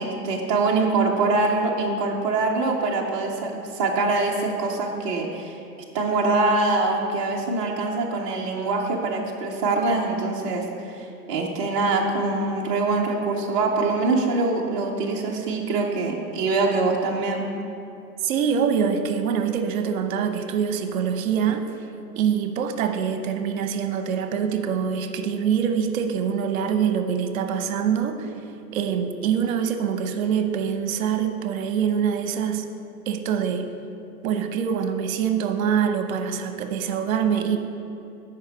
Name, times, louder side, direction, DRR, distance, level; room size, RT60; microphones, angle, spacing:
voice 1, 0.0-5.6 5.9-11.0 11.3-17.4, right 3 dB, 20° right, -1 dB, 0.4 m, -24 dB
voice 2, 18.2-21.7 22.2-28.3 28.7-32.7 33.1-33.7 34.2-37.6, right 7 dB, 60° right, 8 dB, 0.8 m, -24 dB
8.6 x 5.0 x 5.1 m, 2.8 s
hypercardioid pair, 125°, 47 cm